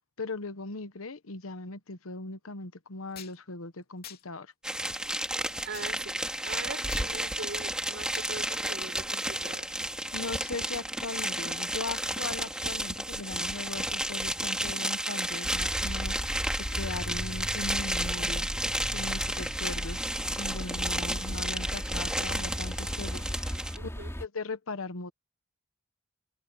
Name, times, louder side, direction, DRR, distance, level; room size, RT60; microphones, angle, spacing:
voice 1, 0.2-4.5 10.1-16.1 16.5-18.5 18.9-20.1 20.4-23.2 24.2-25.1, left 3 dB, 90° left, 1.1 m, -39 dB
sound 1, 3.2-3.4 4.0-4.2 5.7-5.9 6.9-7.1 8.1-8.3, left 10 dB, 50° left, 3.2 m, -45 dB
sound 2, 4.6-23.8, right 1 dB, 5° right, 2.2 m, -32 dB
voice 2, 5.7-9.8 23.8-24.2, right 3 dB, 60° right, 6.0 m, -41 dB
sound 3, 15.4-24.3, equal, 15° left, 4.3 m, -36 dB
head